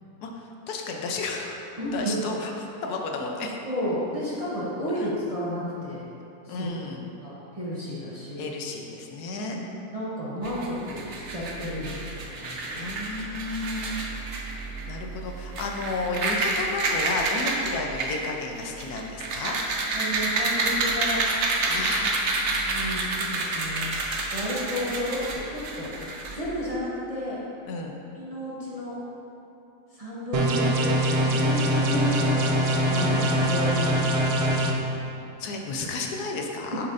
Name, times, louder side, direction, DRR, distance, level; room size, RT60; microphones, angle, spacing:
voice 1, 0.2-1.6 1.9-3.5 6.5-7.1 8.4-9.6 12.8-14.1 14.9-19.5 21.7-22.2 27.6-27.9 35.4-36.9, left 3 dB, 80° left, 2 dB, 1.2 m, -32 dB
voice 2, 1.8-2.3 3.6-6.0 6.4-6.7 7.2-8.5 9.3-12.9 19.9-21.2 22.4-24.0 24.3-25.9 26.3-27.4 28.1-29.0 29.9-31.0 31.3-34.1 34.5-34.6 36.7-36.9, equal, 30° right, -9 dB, 0.8 m, -32 dB
sound 1, 10.4-26.7, right 2 dB, 60° right, 0.8 m, -29 dB
sound 2, 30.3-34.7, right 1 dB, 80° right, 0.5 m, -23 dB
6.9 x 6.3 x 2.5 m, 2.9 s
omnidirectional pair, 1.7 m